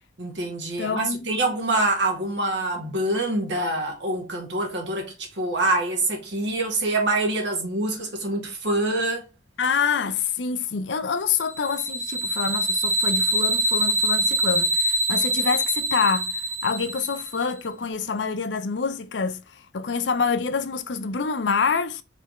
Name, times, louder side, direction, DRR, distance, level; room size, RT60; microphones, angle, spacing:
voice 1, 0.2-9.2, right 2 dB, 80° right, 1.9 m, -25 dB
voice 2, 0.8-1.2 9.6-22.0, left 5 dB, 80° left, 0.6 m, -26 dB
sound 1, 11.5-17.4, right 1 dB, 10° right, 0.5 m, -24 dB
5.1 x 3.3 x 3.0 m
head